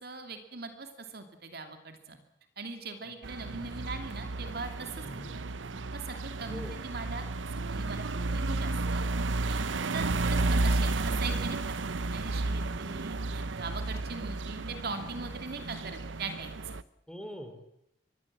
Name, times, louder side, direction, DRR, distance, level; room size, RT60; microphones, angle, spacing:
voice 1, 0.0-2.2 2.6-5.4 5.9-7.2 7.5-9.1 9.5-9.7 9.9-16.8, right 3 dB, 55° right, 6 dB, 2.8 m, -41 dB
sound 1, 3.2-16.8, right 3 dB, 80° right, 0.8 m, -32 dB
voice 2, 5.0-5.4 6.4-6.8 17.1-17.7, equal, 5° left, 6 dB, 3.4 m, -44 dB
24.5 x 19.5 x 7.6 m, 0.77 s
head